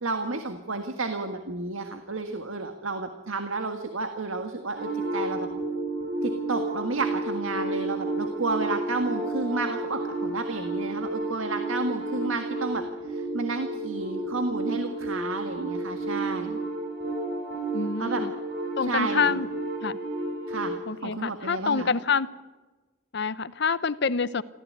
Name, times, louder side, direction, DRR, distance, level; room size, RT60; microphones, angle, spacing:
voice 1, 0.0-5.5 6.2-16.6 18.0-18.2 18.8-19.2 20.5-20.8 21.0-21.9, right 3 dB, 85° right, 6 dB, 1.8 m, -31 dB
sound 1, 4.8-20.8, right 2 dB, 50° right, 7.9 m, -31 dB
voice 2, 17.7-18.3 18.8-19.5 19.8-20.0 20.9-22.3 23.1-24.4, left 5 dB, 55° left, 16 dB, 0.8 m, -27 dB
26.0 x 15.5 x 9.6 m, 1.2 s
head